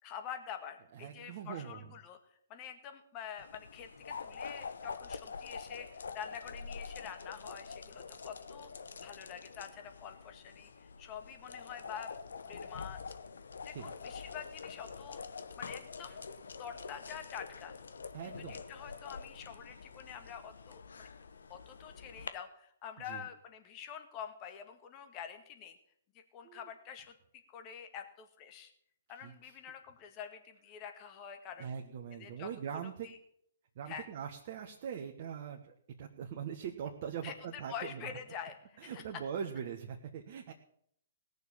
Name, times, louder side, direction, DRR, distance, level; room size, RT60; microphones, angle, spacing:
voice 1, 0.0-8.7 9.0-12.1 12.4-13.0 13.6-15.2 15.6-16.2 16.6-17.8 18.2-21.1 21.5-25.8 26.1-27.1 27.5-28.7 29.1-31.7 32.2-32.5 33.0-33.2 33.9-34.1 37.2-39.0, left 8 dB, 30° left, 6 dB, 1.9 m, -47 dB
voice 2, 0.9-1.9 13.7-13.9 18.1-18.6 23.0-23.3 26.4-26.7 29.2-29.5 31.6-33.1 33.7-38.1 38.8-40.5, right 8 dB, 50° right, 1 dB, 1.4 m, -42 dB
sound 1, 3.4-22.3, left 5 dB, 75° left, 0.9 m, -46 dB
17.5 x 6.8 x 7.2 m, 0.69 s
hypercardioid pair, 130°, 0 cm